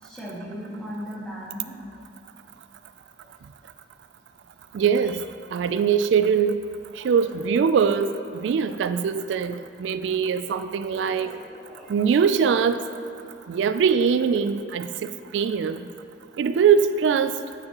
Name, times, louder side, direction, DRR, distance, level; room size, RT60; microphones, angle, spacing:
voice 1, 0.0-1.7 3.2-3.3 7.0-7.1 10.7-12.3, equal, 5° left, -8 dB, 1.9 m, -39 dB
voice 2, 4.7-5.3 5.5-6.6 7.0-11.4 11.9-12.9 13.5-15.8 16.4-17.4, right 6 dB, 85° right, 11 dB, 0.3 m, -22 dB
9.7 x 8.9 x 2.9 m, 2.7 s
head